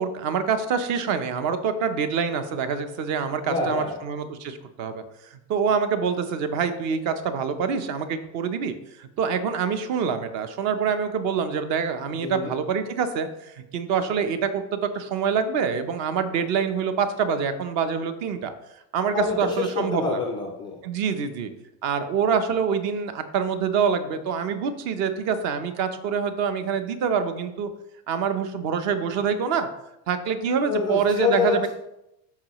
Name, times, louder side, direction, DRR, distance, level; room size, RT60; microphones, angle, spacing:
voice 1, 0.0-5.0 5.3-18.5 18.9-20.2 20.8-21.5 21.8-27.7 28.1-29.7 30.1-31.7, right 6 dB, 40° right, 9 dB, 0.7 m, -26 dB
voice 2, 3.4-3.9 12.1-12.5 19.1-20.8 30.7-31.7, left 4 dB, 10° left, -2 dB, 0.3 m, -26 dB
13.0 x 4.9 x 3.0 m, 0.85 s
supercardioid pair, 165°, 45 cm